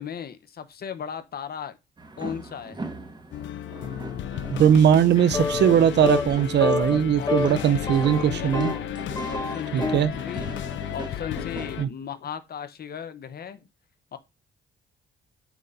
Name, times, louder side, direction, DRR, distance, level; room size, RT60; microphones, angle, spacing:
voice 1, 0.0-1.8 2.2-3.0 7.2-8.7 9.3-10.6 10.9-13.6 14.1-14.2, left 8 dB, 50° left, 1.0 m, -37 dB
sound 1, 2.0-11.8, right 2 dB, 20° right, 1.4 m, -40 dB
sound 2, 3.3-11.9, left 11 dB, 70° left, 0.5 m, -34 dB
voice 2, 4.6-8.7 9.7-10.1 11.8-11.9, right 9 dB, 60° right, 0.7 m, -20 dB
sound 3, 5.3-5.8 6.0-6.3 6.6-7.0 7.3-7.5 7.9-8.9 9.1-10.1, left 4 dB, 20° left, 1.8 m, -27 dB
9.0 x 4.1 x 2.6 m
cardioid pair, 90°, 20 cm